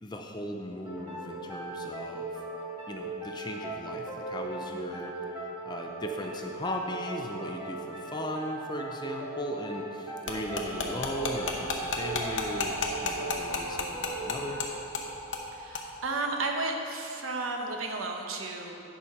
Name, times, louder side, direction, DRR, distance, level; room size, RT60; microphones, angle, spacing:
voice 1, 0.0-2.4 2.9-5.1 5.6-14.6, left 1 dB, 20° left, 3 dB, 0.5 m, -37 dB
sound 1, 0.8-16.2, right 2 dB, 20° right, 1.9 m, -39 dB
sound 2, 10.3-14.7 14.9-15.0 15.3-15.5 15.7-15.8, left 4 dB, 65° left, 1.0 m, -31 dB
voice 2, 15.6-18.8, right 2 dB, 85° right, 1 dB, 1.0 m, -33 dB
9.6 x 4.9 x 5.8 m, 2.8 s
head